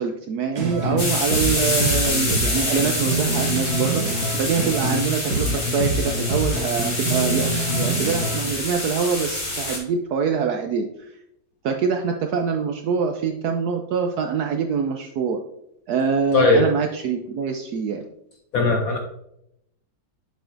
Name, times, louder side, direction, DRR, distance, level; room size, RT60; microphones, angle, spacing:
voice 1, 0.0-7.5 7.8-11.1 11.6-15.4 15.9-18.0, right 6 dB, 75° right, 4 dB, 0.9 m, -24 dB
sound 1, 0.6-1.0 1.3-5.0 5.3-8.5, right 2 dB, 50° right, 1.8 m, -25 dB
sound 2, 1.0-9.8, left 2 dB, 35° left, 1.9 m, -27 dB
voice 2, 16.3-16.6 18.5-19.0, left 3 dB, 65° left, 4 dB, 0.8 m, -18 dB
7.4 x 7.1 x 2.6 m, 0.80 s
omnidirectional pair, 2.2 m